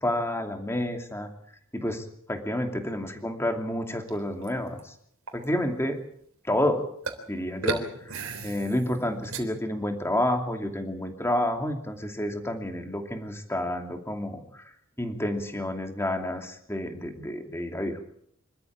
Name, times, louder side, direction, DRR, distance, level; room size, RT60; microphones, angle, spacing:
voice 1, 0.0-1.3 1.7-4.9 5.3-6.0 6.4-6.8 7.3-18.0, left 1 dB, 10° left, 5 dB, 2.7 m, -30 dB
sound 1, 4.1-4.8 5.3-5.4 7.0-7.2 7.6-9.4, right 3 dB, 75° right, 3.6 m, -34 dB
26.0 x 13.5 x 8.7 m, 0.69 s
head